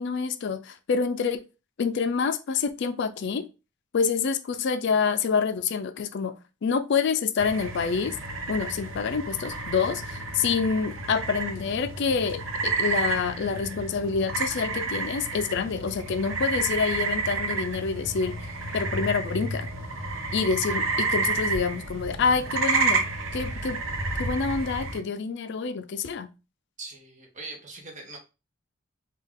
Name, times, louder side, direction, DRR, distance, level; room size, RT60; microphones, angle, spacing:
voice 1, 0.0-1.4 1.8-3.5 3.9-6.4 6.6-8.2 8.5-18.4 18.7-19.7 20.3-23.8 24.2-26.3, left 5 dB, 60° left, 10 dB, 0.4 m, -27 dB
sound 1, 7.4-25.0, right 3 dB, 75° right, 0.8 m, -30 dB
voice 2, 26.8-28.2, right 3 dB, 40° right, 2 dB, 1.0 m, -41 dB
3.6 x 2.3 x 3.6 m, 0.29 s
head